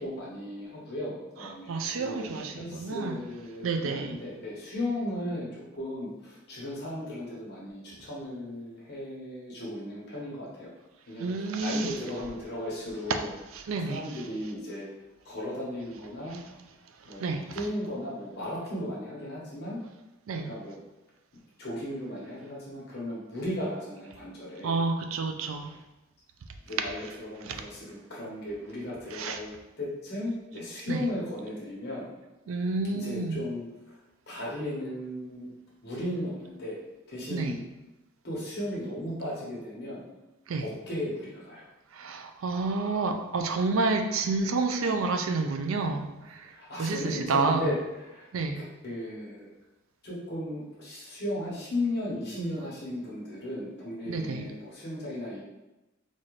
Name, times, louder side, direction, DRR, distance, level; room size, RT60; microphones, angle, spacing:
voice 1, 0.0-5.5 5.7-10.7 11.1-11.3 11.6-13.3 13.8-14.9 15.2-16.4 17.1-19.8 20.4-20.8 21.6-24.8 26.7-32.1 32.9-33.6 34.3-35.5 35.8-36.8 37.1-37.6 38.2-40.0 40.6-41.6 46.5-47.7 48.1-48.3 48.8-49.5 50.0-55.4, left 1 dB, 55° left, -5 dB, 1.1 m, -36 dB
voice 2, 1.4-3.2 3.6-4.2 11.2-12.0 13.1-13.2 13.5-14.2 16.3-16.4 17.0-17.7 20.3-20.6 24.6-25.8 27.4-27.6 29.1-29.4 30.9-31.1 32.5-33.5 37.3-37.6 40.5-40.7 41.9-47.7 48.3-48.6 54.1-54.5, right 3 dB, 85° right, 6 dB, 0.4 m, -30 dB
4.1 x 2.5 x 3.2 m, 1.0 s
head